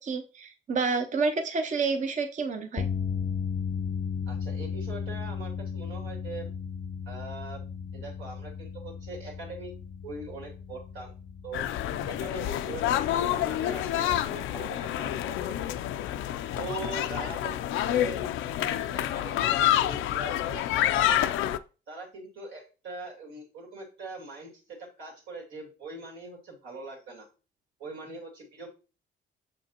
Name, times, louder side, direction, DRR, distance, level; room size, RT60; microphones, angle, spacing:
voice 1, 0.0-2.8, right 4 dB, 40° right, 5 dB, 0.6 m, -29 dB
sound 1, 2.8-17.0, left 6 dB, 30° left, 0.4 m, -36 dB
voice 2, 4.3-6.5 7.1-7.6 7.9-9.7 10.0-11.1 11.4-11.7 12.1-15.7 16.6-18.2 18.6-19.5 19.8-21.4 21.9-27.3 27.8-28.8, right 3 dB, 85° right, -1 dB, 2.5 m, -42 dB
sound 2, 11.5-21.6, left 12 dB, 90° left, 0.4 m, -28 dB
6.5 x 5.3 x 2.9 m, 0.34 s
cardioid pair, 90°, 20 cm